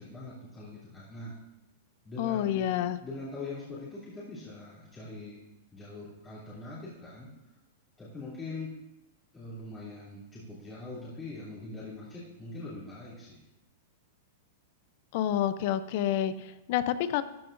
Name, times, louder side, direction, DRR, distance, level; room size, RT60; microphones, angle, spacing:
voice 1, 0.0-1.3 2.0-2.7 3.0-5.4 5.7-7.3 8.0-8.7 9.3-13.4, left 2 dB, 15° left, -10 dB, 2.8 m, -42 dB
voice 2, 2.2-3.0 15.1-17.2, left 11 dB, 50° left, 14 dB, 0.5 m, -28 dB
14.0 x 8.9 x 2.5 m, 0.93 s
supercardioid pair, 145°, 0 cm